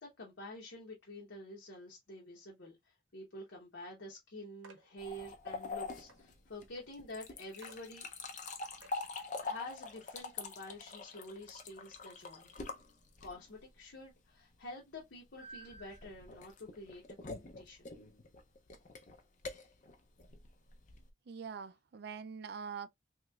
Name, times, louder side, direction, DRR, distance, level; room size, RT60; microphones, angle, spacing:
voice 1, 0.0-8.4 9.4-12.5 13.2-17.9, left 1 dB, 70° left, 0.8 m, -49 dB
sound 1, 4.6-4.9 5.6-5.7 6.1-6.2 6.7-6.8 7.2-7.3 7.6-7.8 8.4-8.5 8.8-9.1 9.6-9.7 10.2-10.3, right 3 dB, 85° right, 0.8 m, -58 dB
sound 2, 5.0-13.6 15.4-21.1, left 3 dB, 40° left, 0.5 m, -45 dB
voice 2, 21.3-22.9, right 6 dB, 55° right, 0.3 m, -44 dB
3.2 x 3.0 x 2.2 m
head